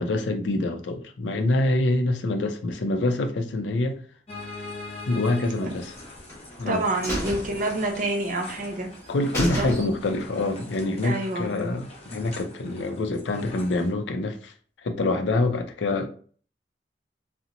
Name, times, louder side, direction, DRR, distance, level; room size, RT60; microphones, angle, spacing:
voice 1, 0.0-4.0 5.1-5.9 6.6-6.8 9.1-14.5 14.8-16.1, left 2 dB, 90° left, 0.4 m, -26 dB
sound 1, 4.3-13.9, left 2 dB, 35° left, 0.6 m, -42 dB
sound 2, 5.9-6.6 7.0-8.3 8.6-8.7 9.0-9.1 9.3-10.2 10.6-10.7, equal, 15° left, 0.9 m, -32 dB
voice 2, 6.7-8.9 9.6-9.7 11.0-11.6, right 2 dB, 45° right, 0.5 m, -27 dB
2.8 x 2.0 x 2.5 m
head